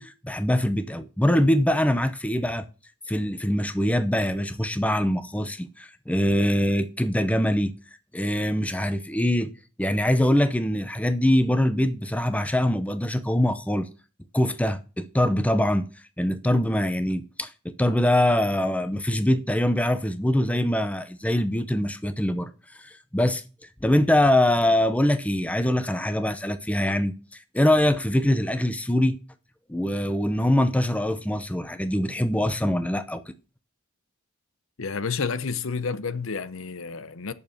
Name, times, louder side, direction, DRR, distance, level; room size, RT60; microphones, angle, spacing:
voice 1, 0.0-2.6 3.1-7.7 8.1-9.5 9.8-13.9 14.3-15.9 16.2-22.5 22.8-23.4 23.8-27.1 27.5-29.2 29.7-33.2, left 1 dB, 5° left, 0.7 m, -23 dB
voice 2, 34.8-37.3, left 5 dB, 65° left, 0.7 m, -30 dB
8.5 x 6.9 x 6.6 m
head